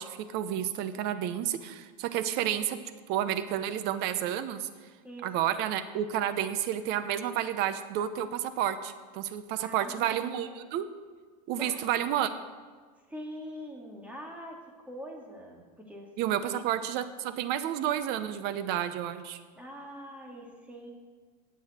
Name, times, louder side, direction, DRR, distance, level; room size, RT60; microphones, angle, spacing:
voice 1, 0.0-2.8 3.1-4.7 5.2-10.9 11.5-12.3 16.2-19.4, right 10 dB, 50° right, 12 dB, 0.9 m, -30 dB
voice 2, 9.6-10.6 11.6-11.9 13.1-16.1 16.4-16.6 19.6-20.9, equal, 5° right, 0 dB, 2.2 m, -44 dB
18.0 x 7.3 x 4.4 m, 1.5 s
supercardioid pair, 120°, 21 cm